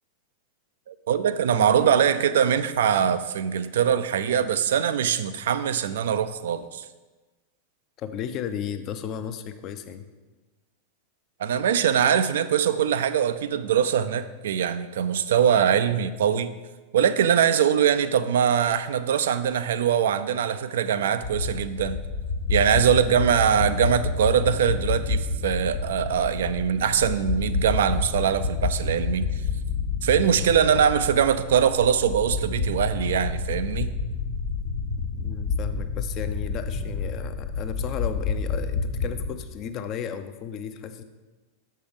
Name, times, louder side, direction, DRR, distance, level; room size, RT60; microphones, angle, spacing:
voice 1, 0.9-6.8 11.4-16.5 16.9-22.0 22.5-29.3 30.0-33.9, right 8 dB, 60° right, 12 dB, 0.4 m, -22 dB
voice 2, 8.0-10.0 35.1-41.0, left 8 dB, 35° left, 9 dB, 0.6 m, -34 dB
sound 1, 21.2-39.3, left 4 dB, 65° left, 1.2 m, -29 dB
6.9 x 5.4 x 5.2 m, 1.2 s
figure-of-eight pair, 90°, 0 cm